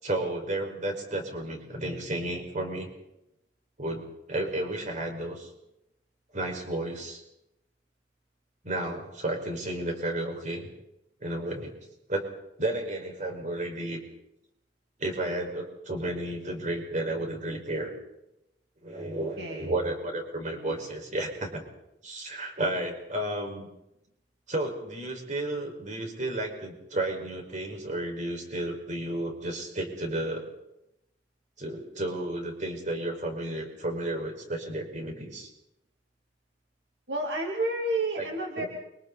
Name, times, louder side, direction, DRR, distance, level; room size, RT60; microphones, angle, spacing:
voice 1, 0.0-2.9 3.8-5.5 6.3-7.2 8.6-10.7 11.2-11.7 12.1-12.3 12.6-14.0 15.0-17.9 18.8-21.6 22.0-23.7 24.5-30.5 31.6-35.5 38.2-38.3 38.6-38.7, right 1 dB, 45° right, 2 dB, 5.4 m, -32 dB
voice 2, 19.4-19.7 37.1-38.7, right 2 dB, 70° right, 0 dB, 2.7 m, -30 dB
29.0 x 24.5 x 4.2 m, 0.86 s
head